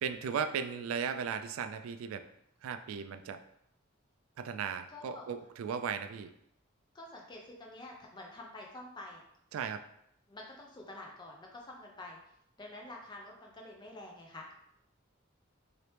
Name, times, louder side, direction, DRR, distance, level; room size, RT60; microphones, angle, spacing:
voice 1, 0.0-2.3 2.6-3.4 4.4-6.3 9.5-9.8, right 6 dB, 90° right, 12 dB, 0.3 m, -36 dB
voice 2, 4.9-5.2 6.9-9.2 10.3-12.2 12.6-14.5, left 2 dB, 20° left, -1 dB, 0.6 m, -48 dB
3.0 x 2.9 x 3.2 m, 0.74 s
head